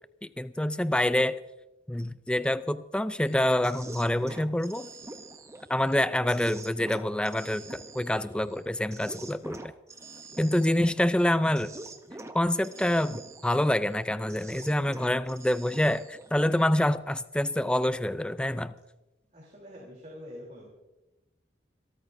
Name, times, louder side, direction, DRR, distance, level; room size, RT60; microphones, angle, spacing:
voice 1, 0.2-1.4 1.9-4.9 5.7-9.7 10.4-11.7 12.3-18.7, left 1 dB, 5° left, 13 dB, 0.4 m, -26 dB
sound 1, 3.2-16.9, right 2 dB, 15° right, 0.7 m, -46 dB
voice 2, 19.3-20.7, equal, 40° right, -3 dB, 3.4 m, -45 dB
26.5 x 13.5 x 2.6 m, 1.0 s
head